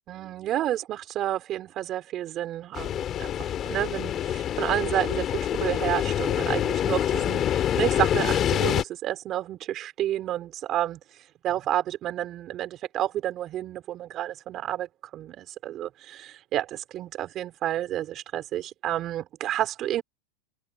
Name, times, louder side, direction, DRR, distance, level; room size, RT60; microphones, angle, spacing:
voice 1, 0.1-11.0 11.4-20.0, right 12 dB, 30° right, 5.3 m, -30 dB
sound 1, 2.8-8.8, left 10 dB, 30° left, 2.9 m, -26 dB
supercardioid pair, 145°, 0 cm